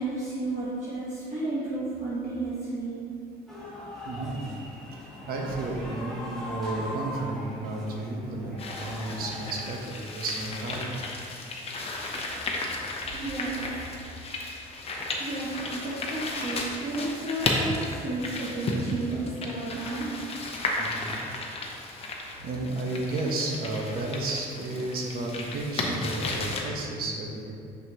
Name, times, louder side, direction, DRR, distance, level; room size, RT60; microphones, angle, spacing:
voice 1, 0.0-3.0 13.1-13.7 15.2-20.1, right 2 dB, 45° right, -8 dB, 1.2 m, -32 dB
sound 1, 3.5-9.8, left 1 dB, ahead, 1.4 m, -40 dB
voice 2, 4.0-4.5 5.3-10.9 20.8-21.1 22.4-27.5, right 2 dB, 65° right, 0 dB, 1.0 m, -32 dB
sound 2, 8.6-26.6, left 2 dB, 35° left, 0.8 m, -34 dB
5.7 x 5.7 x 2.9 m, 2.4 s
cardioid pair, 110°, 17 cm